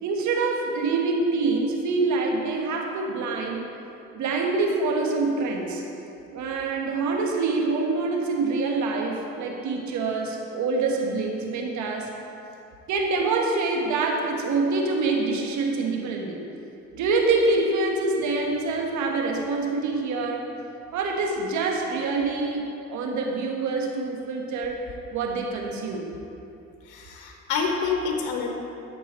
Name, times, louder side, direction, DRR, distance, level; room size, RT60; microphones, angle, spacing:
voice 1, 0.0-3.6 4.1-5.8 6.3-12.1 12.9-16.4 16.9-20.4 20.9-24.9 25.1-26.1, right 3 dB, 75° right, 0 dB, 1.5 m, -25 dB
voice 2, 26.8-28.5, left 5 dB, 90° left, 1 dB, 1.1 m, -27 dB
11.5 x 6.8 x 4.3 m, 2.8 s
cardioid pair, 85°, 29 cm